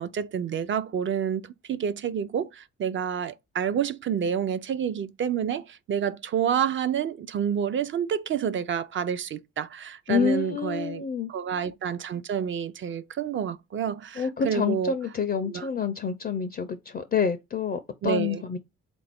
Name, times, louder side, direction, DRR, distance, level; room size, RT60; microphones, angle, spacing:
voice 1, 0.0-15.0 15.4-15.7 18.0-18.4, right 8 dB, 40° right, 0.4 m, -29 dB
voice 2, 10.1-11.3 14.2-18.6, left 6 dB, 30° left, 0.4 m, -28 dB
3.8 x 2.5 x 3.4 m
cardioid pair, 90°, 30 cm